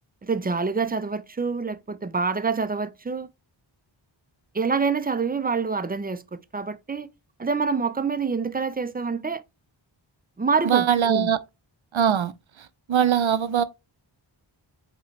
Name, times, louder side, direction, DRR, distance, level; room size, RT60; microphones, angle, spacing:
voice 1, 0.2-3.3 4.5-7.1 7.4-9.4 10.4-11.3, right 5 dB, 20° right, 0.5 m, -26 dB
voice 2, 10.6-11.4 11.9-12.3 12.6-13.6, right 8 dB, 75° right, 0.7 m, -22 dB
5.0 x 3.1 x 3.2 m
wide cardioid pair, 55°, 48 cm